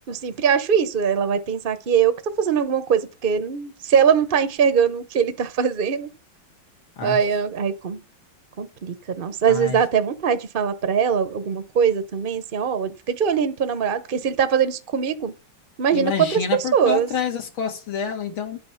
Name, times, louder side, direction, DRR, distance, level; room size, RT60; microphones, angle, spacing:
voice 1, 0.1-6.1 7.0-8.0 8.6-15.3 15.8-16.4 16.7-17.1, right 7 dB, 50° right, 0.6 m, -22 dB
voice 2, 9.5-9.8 15.9-18.6, left 7 dB, 90° left, 2.5 m, -28 dB
9.5 x 8.7 x 5.7 m
omnidirectional pair, 2.2 m